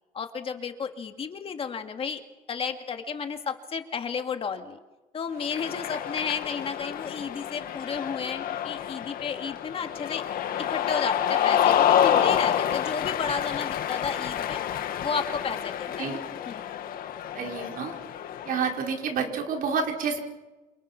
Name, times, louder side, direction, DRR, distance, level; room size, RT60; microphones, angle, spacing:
voice 1, 0.1-2.2 2.5-4.8 5.1-10.2 10.6-14.6 15.0-16.1 16.5-16.6, left 6 dB, 40° left, 6 dB, 2.1 m, -32 dB
Cheering, 5.4-18.9, left 10 dB, 75° left, 2.0 m, -28 dB
voice 2, 17.3-17.9 18.4-20.2, right 5 dB, 65° right, 2 dB, 5.0 m, -29 dB
28.5 x 28.0 x 6.0 m, 1.1 s
cardioid pair, 165°, 15 cm